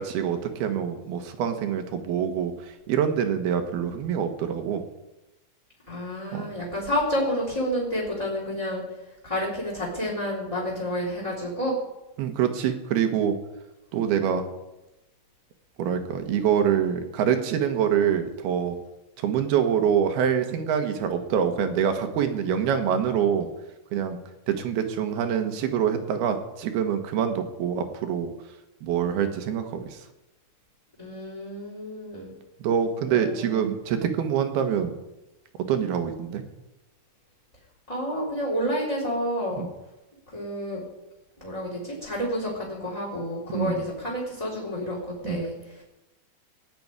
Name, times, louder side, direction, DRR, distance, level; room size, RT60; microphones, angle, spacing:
voice 1, 0.0-2.5 2.9-4.8 6.3-6.5 12.2-13.4 13.9-14.4 15.8-18.8 19.2-23.5 23.9-24.2 24.5-28.3 28.8-30.0 32.6-35.0 35.7-36.4 39.6-39.7 43.5-43.8 45.2-45.4, right 8 dB, 65° right, 7 dB, 2.8 m, -25 dB
voice 2, 5.9-8.8 9.2-11.7 31.0-32.3 33.1-33.6 37.9-39.6 40.3-40.8 41.4-45.8, equal, 10° left, -2 dB, 3.3 m, -29 dB
19.5 x 7.0 x 9.6 m, 0.96 s
omnidirectional pair, 5.6 m